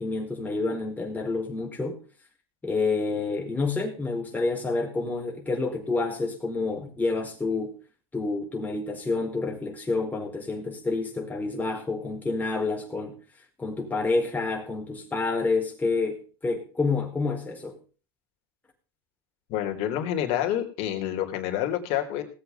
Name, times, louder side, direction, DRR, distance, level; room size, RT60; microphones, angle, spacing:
voice 1, 0.0-2.0 2.6-7.8 8.1-13.2 13.6-17.8, left 3 dB, 10° left, 4.7 m, -28 dB
voice 2, 19.5-22.2, left 11 dB, 55° left, 3.8 m, -28 dB
19.0 x 8.1 x 5.5 m
supercardioid pair, 120°, 13 cm